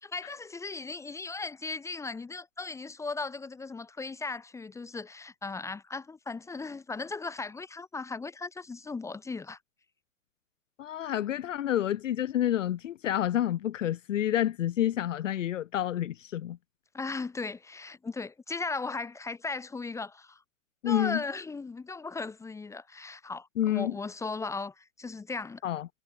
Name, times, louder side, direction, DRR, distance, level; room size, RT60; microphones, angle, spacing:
voice 1, 0.0-9.6 16.9-20.4 20.8-25.6, left 4 dB, 5° left, 1.1 m, -37 dB
voice 2, 10.8-16.6 20.8-21.2 23.6-23.9 25.6-25.9, left 11 dB, 65° left, 0.9 m, -29 dB
hypercardioid pair, 120°, 41 cm